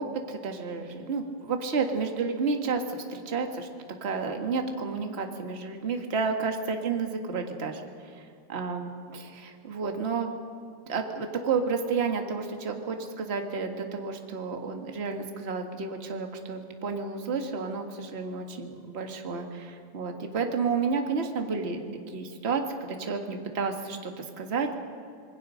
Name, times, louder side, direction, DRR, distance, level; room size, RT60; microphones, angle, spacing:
voice 1, 0.0-3.7 4.0-10.3 10.9-21.8 22.1-22.6 23.0-24.8, right 5 dB, 30° right, 4 dB, 1.1 m, -31 dB
26.5 x 21.0 x 6.4 m, 2.4 s
omnidirectional pair, 3.9 m